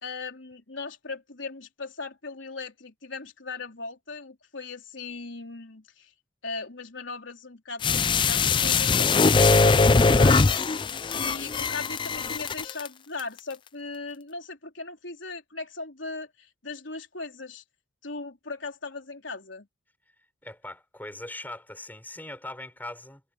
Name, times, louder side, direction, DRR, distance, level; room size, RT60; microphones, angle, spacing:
voice 1, 0.0-6.1 6.4-10.5 11.1-17.6 18.0-19.7, left 3 dB, 75° left, 3.5 m, -38 dB
sound 1, 7.8-12.9 13.2-13.3, left 4 dB, 25° left, 0.4 m, -21 dB
voice 2, 20.4-23.2, left 1 dB, 10° left, 6.5 m, -40 dB
head